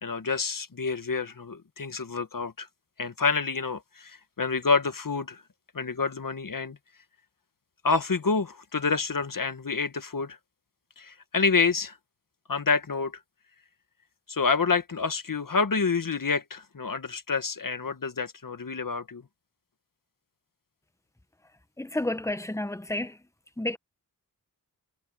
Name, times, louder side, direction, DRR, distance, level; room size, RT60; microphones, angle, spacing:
voice 1, 0.0-2.7 3.0-5.4 5.7-6.8 7.8-10.4 11.0-12.0 12.5-13.2 14.3-19.2, left 4 dB, 55° left, 1.8 m, -28 dB
voice 2, 21.8-23.2 23.6-23.8, left 1 dB, 10° left, 1.2 m, -30 dB
wide cardioid pair, 60°, 39 cm